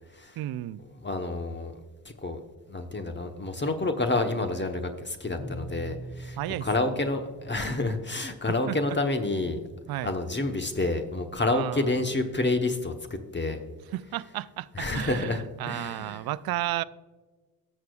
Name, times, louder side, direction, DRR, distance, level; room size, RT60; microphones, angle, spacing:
voice 1, 0.4-0.8 6.4-6.7 8.7-9.0 9.9-10.1 11.5-11.9 13.9-16.8, right 15 dB, 65° right, 0.5 m, -33 dB
voice 2, 0.9-1.8 2.2-2.4 2.7-9.6 10.0-13.6 14.7-16.2, left 2 dB, 25° left, 1.1 m, -29 dB
Bowed string instrument, 5.4-8.2, right 1 dB, 50° left, 2.5 m, -42 dB
18.5 x 6.5 x 2.4 m
supercardioid pair, 45°, 40 cm